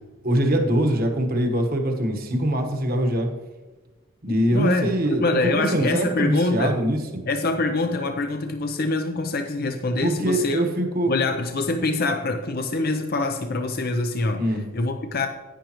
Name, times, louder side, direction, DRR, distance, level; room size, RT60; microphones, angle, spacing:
voice 1, 0.2-3.3 4.2-7.2 10.0-11.1 14.4-14.6, right 1 dB, 45° right, 4 dB, 1.2 m, -23 dB
voice 2, 4.5-6.8 7.3-10.6 11.1-15.3, left 2 dB, 45° left, 6 dB, 0.6 m, -25 dB
10.5 x 10.0 x 3.0 m, 1.2 s
head